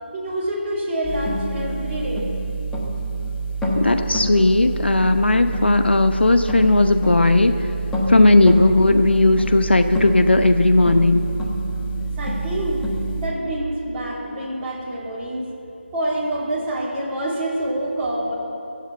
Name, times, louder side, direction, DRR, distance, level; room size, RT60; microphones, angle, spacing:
voice 1, 0.1-2.3 11.9-12.8 13.2-15.5 15.9-18.3, right 1 dB, 15° right, -7 dB, 2.8 m, -26 dB
sound 1, 1.0-13.3, right 1 dB, 5° left, 1.3 m, -26 dB
voice 2, 3.8-7.7 8.1-11.3, left 2 dB, 65° left, 8 dB, 0.9 m, -16 dB
22.5 x 8.0 x 8.0 m, 2.8 s
figure-of-eight pair, 160°, 6 cm